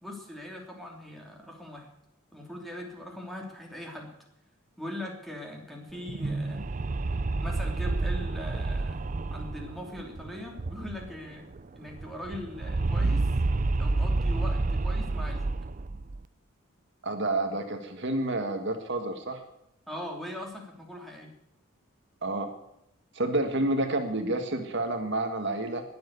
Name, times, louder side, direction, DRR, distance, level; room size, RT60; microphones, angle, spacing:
voice 1, 0.0-1.9 2.3-4.1 4.8-6.7 7.4-9.0 9.3-11.5 11.7-13.3 13.8-15.4 19.9-21.3, left 1 dB, ahead, 0 dB, 3.0 m, -40 dB
sound 1, 5.9-11.3 11.5-11.6 11.9-16.2, right 2 dB, 35° right, 0.5 m, -29 dB
voice 2, 17.0-19.4 22.2-22.5 23.1-25.8, right 2 dB, 55° right, 5 dB, 1.7 m, -29 dB
20.5 x 7.8 x 8.3 m, 0.81 s
head